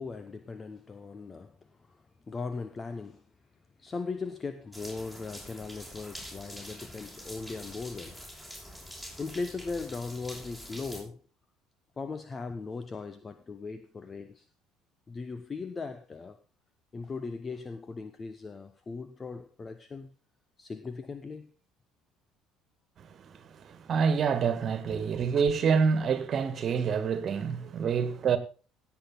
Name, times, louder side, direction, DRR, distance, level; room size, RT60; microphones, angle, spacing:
voice 1, 0.0-1.6 1.9-3.2 3.8-8.2 9.2-11.2 12.0-14.5 15.1-16.4 16.9-20.1 20.6-21.5, left 4 dB, 30° left, 1.0 m, -38 dB
sound 1, 4.7-11.0, equal, 10° left, 6.4 m, -45 dB
voice 2, 23.0-28.4, right 6 dB, 45° right, 1.8 m, -27 dB
17.0 x 8.4 x 4.0 m
figure-of-eight pair, 55°, 0 cm